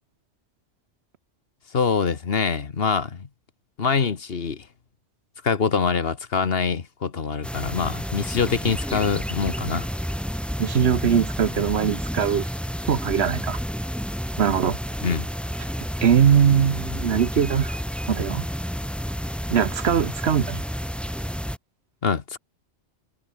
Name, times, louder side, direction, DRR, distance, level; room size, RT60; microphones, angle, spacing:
voice 1, 1.7-3.3 3.8-4.7 5.4-9.9 15.0-15.3 22.0-22.4, left 5 dB, 55° left, 1.5 m, -24 dB
sound 1, 7.4-21.6, equal, ahead, 7.6 m, -30 dB
voice 2, 10.6-12.5 12.9-13.6 14.4-14.8 16.0-17.8 18.1-18.5 19.5-20.6, right 8 dB, 65° right, 1.1 m, -21 dB
omnidirectional pair, 1.2 m